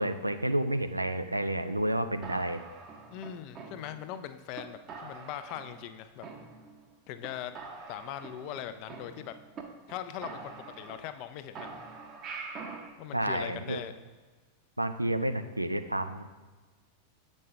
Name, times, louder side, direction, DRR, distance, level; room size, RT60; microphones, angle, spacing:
voice 1, 0.0-2.6 13.1-13.8 14.8-16.3, right 1 dB, 85° right, 9 dB, 0.3 m, -30 dB
sound 1, 2.2-4.2 4.6-4.7 4.9-5.9 6.2-6.9 7.2-7.3 7.6-9.6 9.9-10.0 10.2-11.3 11.6-12.9, right 4 dB, 30° right, 0.8 m, -44 dB
voice 2, 3.1-6.3 7.1-7.6 7.9-9.3 9.9-11.7 13.0-13.9, left 10 dB, 45° left, 10 dB, 0.4 m, -40 dB
7.5 x 5.3 x 3.3 m, 1.3 s
figure-of-eight pair, 90°, 0 cm